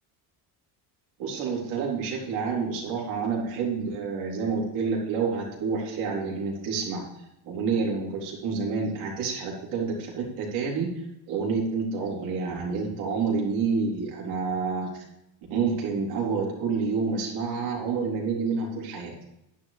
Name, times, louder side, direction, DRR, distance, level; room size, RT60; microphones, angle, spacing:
voice 1, 1.2-7.0 7.5-10.9 11.3-15.0 15.5-19.1, right 5 dB, 90° right, -2 dB, 3.7 m, -28 dB
11.0 x 10.5 x 3.4 m, 0.86 s
supercardioid pair, 85°, 48 cm